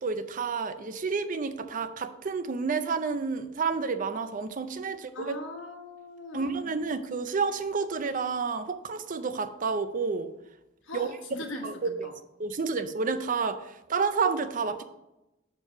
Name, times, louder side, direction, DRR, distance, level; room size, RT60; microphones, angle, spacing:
voice 1, 0.0-5.4 6.3-10.3 10.9-11.2 11.6-12.1 12.4-14.8, right 5 dB, 45° right, 10 dB, 0.5 m, -30 dB
voice 2, 5.1-6.7 10.9-12.1, left 2 dB, 85° left, 3 dB, 1.3 m, -40 dB
6.4 x 4.5 x 5.7 m, 0.93 s
head